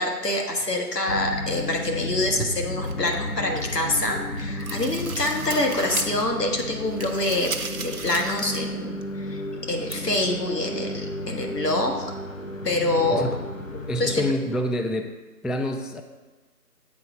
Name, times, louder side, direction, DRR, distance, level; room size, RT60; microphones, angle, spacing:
voice 1, 0.0-9.4 9.7-12.1 12.6-13.3 13.7-14.2, left 1 dB, 80° left, 2 dB, 1.6 m, -26 dB
sound 1, 1.1-14.3, left 2 dB, 55° left, 0.7 m, -33 dB
sound 2, 2.8-3.9 4.2-6.3 6.6-8.7 9.0-9.1 9.9-10.0, right 4 dB, 60° right, 0.7 m, -36 dB
voice 2, 13.9-15.1 15.4-16.0, left 1 dB, ahead, 5 dB, 0.3 m, -27 dB
8.5 x 3.9 x 5.1 m, 1.2 s
figure-of-eight pair, 180°, 47 cm